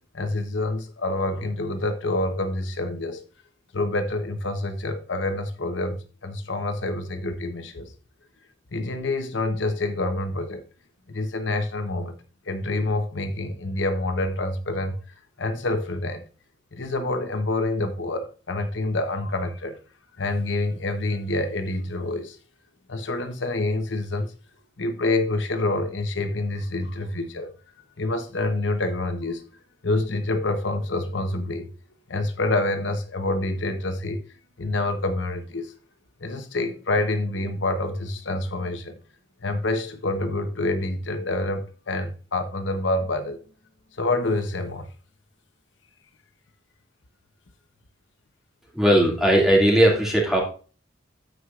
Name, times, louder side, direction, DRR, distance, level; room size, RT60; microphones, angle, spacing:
voice 1, 0.1-3.2 3.7-7.9 8.7-10.6 11.1-12.2 12.5-15.0 15.4-16.2 16.7-19.8 20.2-22.4 22.9-24.3 24.8-27.5 28.0-29.4 29.8-31.7 32.1-34.2 34.6-35.7 36.2-39.0 39.4-43.4 44.0-44.9, left 2 dB, 70° left, 0.9 m, -27 dB
voice 2, 48.7-50.4, right 1 dB, ahead, 2.2 m, -18 dB
14.0 x 4.8 x 2.5 m
head